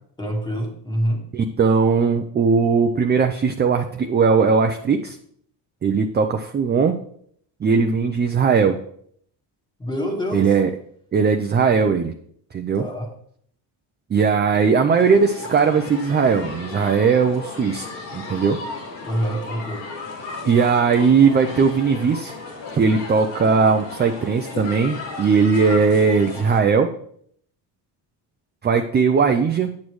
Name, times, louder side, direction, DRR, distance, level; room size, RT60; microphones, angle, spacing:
voice 1, 0.2-1.3 9.8-10.5 12.8-13.1 19.0-19.9, equal, 10° left, 1.7 m, -26 dB
voice 2, 1.3-5.2 5.8-7.0 7.6-8.8 10.3-10.7 11.1-12.1 12.5-12.8 14.1-17.9 18.1-18.6 20.4-22.3 22.7-26.9 28.6-29.7, right 5 dB, 25° right, 0.5 m, -18 dB
sound 1, 15.0-26.6, left 3 dB, 90° left, 2.1 m, -35 dB
8.6 x 6.2 x 3.1 m
cardioid pair, 100°, 43 cm